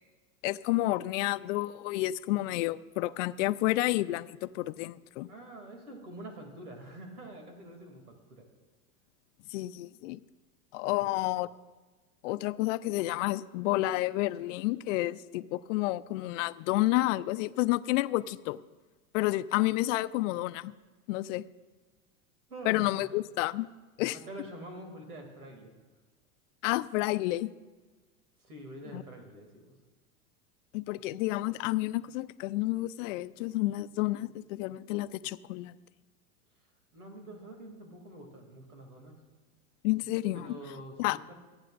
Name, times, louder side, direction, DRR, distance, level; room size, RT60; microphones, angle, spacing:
voice 1, 0.4-5.3 9.5-10.2 10.7-11.5 12.2-18.6 19.1-20.7 21.1-21.4 22.7-23.7 24.0-24.2 26.6-27.5 28.9-29.0 30.7-35.7 39.8-40.6 41.0-41.2, left 18 dB, 60° left, 14 dB, 0.6 m, -30 dB
voice 2, 5.3-8.5 10.8-11.2 22.5-23.1 24.1-25.7 28.4-29.7 36.9-39.2 40.3-41.0 41.3-41.4, right 1 dB, 90° right, 3 dB, 2.8 m, -46 dB
26.0 x 8.9 x 2.5 m, 1.3 s
hypercardioid pair, 105°, 44 cm